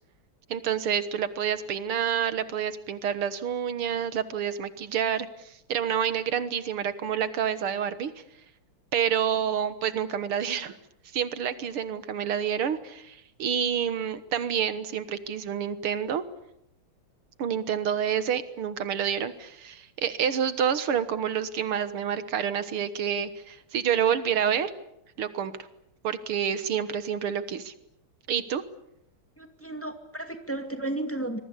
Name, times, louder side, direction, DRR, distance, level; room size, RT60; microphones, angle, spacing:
voice 1, 0.5-8.1 8.9-10.8 11.1-16.2 17.4-24.7 25.2-25.5 26.0-27.7 28.3-28.6, right 8 dB, 75° right, 13 dB, 2.2 m, -28 dB
voice 2, 29.4-31.4, right 2 dB, 5° left, 7 dB, 2.2 m, -33 dB
26.0 x 22.0 x 8.4 m, 0.78 s
omnidirectional pair, 2.4 m